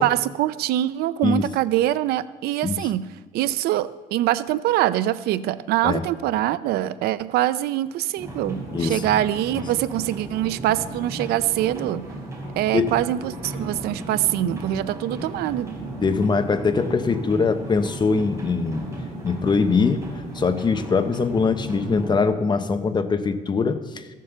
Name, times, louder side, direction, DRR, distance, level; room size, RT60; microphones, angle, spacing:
voice 1, 0.0-3.1 3.3-12.1 12.6-15.7, right 13 dB, 85° right, 15 dB, 0.6 m, -24 dB
sound 1, 8.2-22.2, right 1 dB, 20° right, 5.1 m, -35 dB
voice 2, 16.0-18.9 19.2-20.1 20.3-24.0, left 4 dB, 30° left, 9 dB, 0.9 m, -22 dB
15.0 x 7.5 x 6.9 m, 1.3 s
cardioid pair, 120°, 16 cm